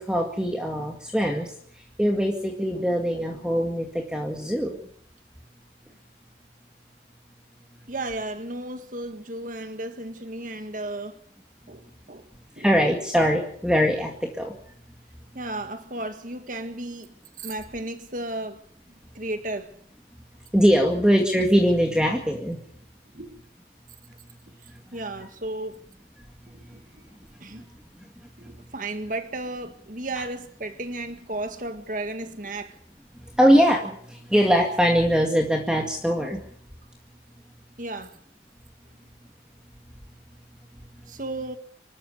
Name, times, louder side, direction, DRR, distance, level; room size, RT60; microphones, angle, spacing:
voice 1, 0.0-1.5 2.0-4.8 12.6-14.5 20.5-22.6 33.4-36.4, equal, 5° right, 2.0 m, -22 dB
voice 2, 7.9-11.2 11.7-12.3 12.6-12.7 15.3-18.6 19.1-19.8 23.1-23.3 24.9-25.8 26.5-27.0 27.4-27.7 28.4-32.8 37.8-38.2 41.1-41.6, right 2 dB, 45° right, 1.7 m, -34 dB
25.5 x 13.0 x 8.1 m
head